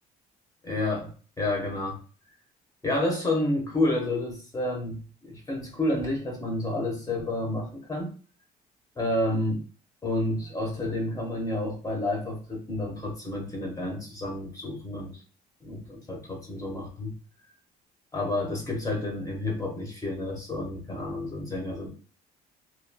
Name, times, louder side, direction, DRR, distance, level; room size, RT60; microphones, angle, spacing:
voice 1, 0.6-2.0 2.8-8.1 9.0-9.6 10.0-15.2 15.6-17.1 18.1-21.9, left 1 dB, 20° left, 0 dB, 1.0 m, -30 dB
3.1 x 2.3 x 2.2 m, 0.38 s
cardioid pair, 110°, 17 cm